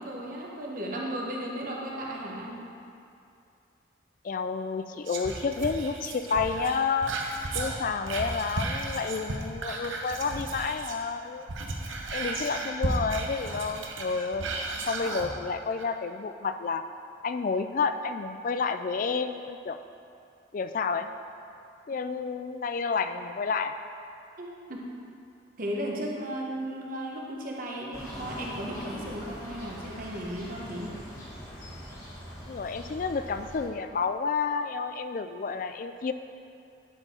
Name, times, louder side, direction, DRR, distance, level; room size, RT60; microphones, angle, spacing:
voice 1, 0.0-2.6 12.4-12.5 24.4-24.9 25.6-30.9, equal, 45° right, -2 dB, 1.1 m, -35 dB
voice 2, 4.2-7.1 7.5-11.5 12.1-14.4 14.9-16.8 17.2-19.8 20.5-21.1 21.9-23.7 32.5-36.1, left 5 dB, 45° left, 9 dB, 0.3 m, -30 dB
Whispering, 5.1-11.1 11.4-15.3 15.8-15.9, right 2 dB, 85° right, 0.9 m, -34 dB
sound 1, 27.9-33.7, equal, 15° left, 1.3 m, -42 dB
10.5 x 4.4 x 4.4 m, 2.6 s
head